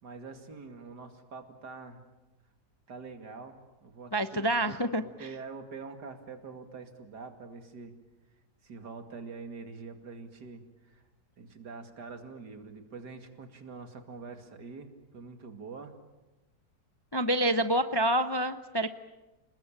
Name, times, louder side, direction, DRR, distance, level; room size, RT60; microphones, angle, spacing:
voice 1, 0.0-2.0 2.9-7.9 8.6-11.0 11.4-16.0, right 4 dB, 80° right, 6 dB, 2.9 m, -45 dB
voice 2, 4.1-5.3 17.1-18.9, right 1 dB, 25° left, 10 dB, 0.5 m, -27 dB
30.0 x 20.0 x 8.9 m, 1.1 s
omnidirectional pair, 1.8 m